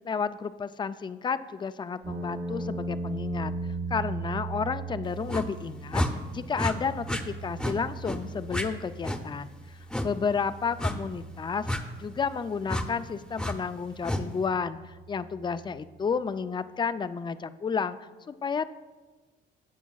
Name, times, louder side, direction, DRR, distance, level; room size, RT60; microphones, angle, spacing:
voice 1, 0.0-3.5 3.9-6.0 6.3-9.5 10.0-11.7 12.0-18.7, left 5 dB, 25° left, 13 dB, 0.4 m, -31 dB
sound 1, 2.0-16.1, right 2 dB, 55° right, 1.7 m, -39 dB
sound 2, 5.3-5.5 5.9-6.1 6.5-6.7 7.1-7.2 7.6-7.8 8.0-8.2 8.5-8.7 9.0-9.2 9.9-10.1 10.8-11.0 11.6-11.8 12.7-12.9 13.4-13.5 14.0-14.2, left 1 dB, 5° left, 0.7 m, -29 dB
15.5 x 7.0 x 2.3 m, 1.3 s
cardioid pair, 90°, 20 cm